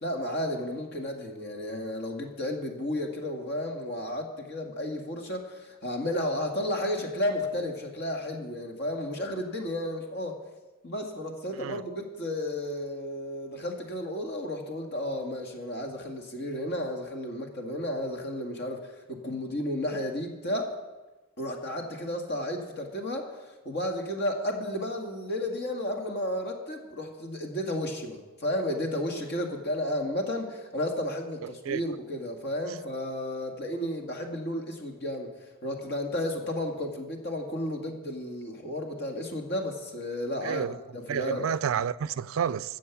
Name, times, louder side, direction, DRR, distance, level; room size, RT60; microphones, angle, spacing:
voice 1, 0.0-10.4 10.8-20.8 21.4-35.3 35.6-40.7 40.9-41.5, left 1 dB, 55° left, 2.0 m, -33 dB
voice 2, 31.4-31.8 40.4-40.7 41.1-42.8, right 7 dB, 80° right, 0.4 m, -30 dB
14.0 x 7.6 x 7.1 m
head